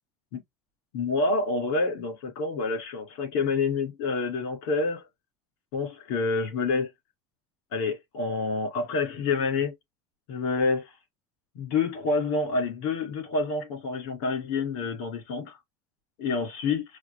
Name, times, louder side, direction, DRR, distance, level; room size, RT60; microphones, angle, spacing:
voice 1, 0.9-5.1 5.7-6.9 7.7-9.7 10.3-10.9 11.5-15.6 16.2-16.8, left 3 dB, 85° left, 2.4 m, -28 dB
4.9 x 2.1 x 3.2 m
supercardioid pair, 110°, 13 cm